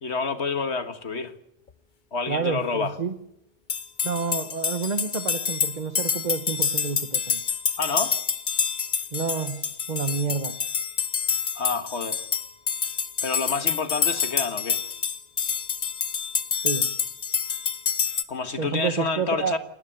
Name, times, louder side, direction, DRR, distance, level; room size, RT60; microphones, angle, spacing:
voice 1, 0.0-1.3 2.1-2.9 7.8-8.1 11.6-12.2 13.2-14.8 18.3-19.6, left 4 dB, 80° left, 9 dB, 1.9 m, -28 dB
voice 2, 2.3-3.1 4.0-7.4 9.1-10.5 16.6-16.9 18.6-19.6, right 5 dB, 40° right, 9 dB, 1.2 m, -29 dB
sound 1, 3.7-18.2, left 6 dB, 50° left, 1.1 m, -27 dB
28.5 x 12.0 x 9.2 m, 0.80 s
omnidirectional pair, 1.1 m